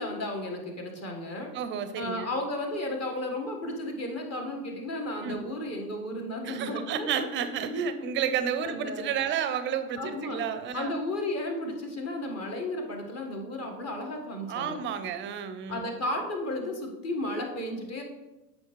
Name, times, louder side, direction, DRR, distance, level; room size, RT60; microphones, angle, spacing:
voice 1, 0.0-1.5 2.0-7.1 8.6-9.2 10.0-10.4 10.7-14.8 15.7-18.0, left 1 dB, 30° left, 2 dB, 1.4 m, -33 dB
voice 2, 1.5-2.3 5.2-5.5 6.4-10.9 14.5-15.9, right 7 dB, 25° right, 9 dB, 0.5 m, -31 dB
7.8 x 5.4 x 3.1 m, 1.1 s
hypercardioid pair, 85°, 49 cm